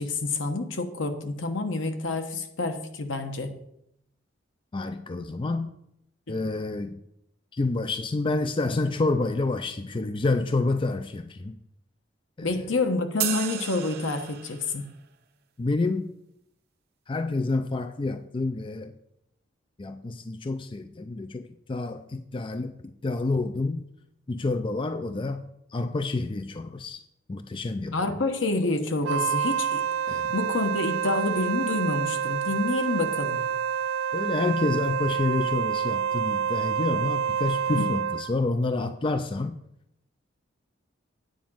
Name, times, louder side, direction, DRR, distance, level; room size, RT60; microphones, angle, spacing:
voice 1, 0.0-3.5 6.3-6.4 12.4-14.9 27.9-29.8 30.3-33.5 37.8-37.9, left 3 dB, 70° left, 6 dB, 1.2 m, -28 dB
voice 2, 4.7-5.7 6.3-7.0 7.5-11.6 12.4-12.7 15.6-16.1 17.1-18.9 19.8-23.8 24.3-25.4 25.7-27.0 27.3-28.2 30.1-30.3 34.1-39.6, left 3 dB, 25° left, 9 dB, 0.4 m, -28 dB
sound 1, 13.2-14.8, right 11 dB, 55° right, 0.8 m, -33 dB
Wind instrument woodwind instrument, 29.0-38.3, right 8 dB, 75° right, 0.3 m, -28 dB
9.3 x 5.1 x 7.3 m, 0.77 s
head